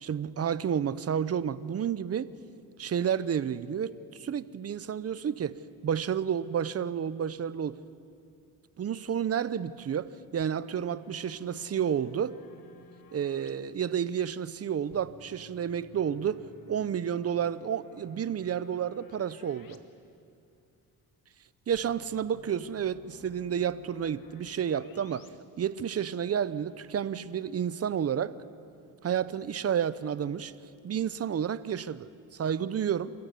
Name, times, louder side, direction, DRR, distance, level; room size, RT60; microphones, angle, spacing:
voice 1, 0.0-2.3 2.8-3.9 4.2-5.5 5.8-7.8 8.8-12.4 13.1-16.4 16.7-19.8 21.7-25.3 25.6-28.3 29.0-30.5 30.8-33.1, right 8 dB, 40° right, 15 dB, 0.8 m, -30 dB
sound 1, 10.4-13.5 14.9-19.8 20.1-20.2 21.7-25.3, left 7 dB, 60° left, 1.4 m, -55 dB
28.0 x 14.5 x 8.3 m, 2.6 s
cardioid pair, 100°, 38 cm